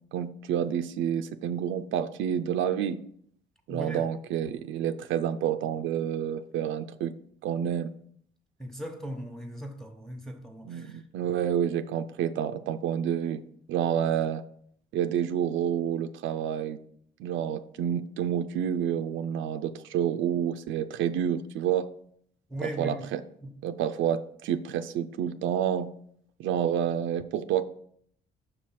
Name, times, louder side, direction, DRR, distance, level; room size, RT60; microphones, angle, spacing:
voice 1, 0.1-3.0 3.7-7.1 7.4-7.9 10.7-13.4 13.7-14.4 14.9-16.8 17.2-21.9 22.6-23.2 23.6-25.9 26.4-27.6, right 9 dB, 80° right, 0.4 m, -29 dB
voice 2, 3.7-4.1 8.6-11.0 22.5-23.1 23.4-23.5, equal, ahead, 1.0 m, -38 dB
6.3 x 3.1 x 5.9 m
cardioid pair, 90°, 20 cm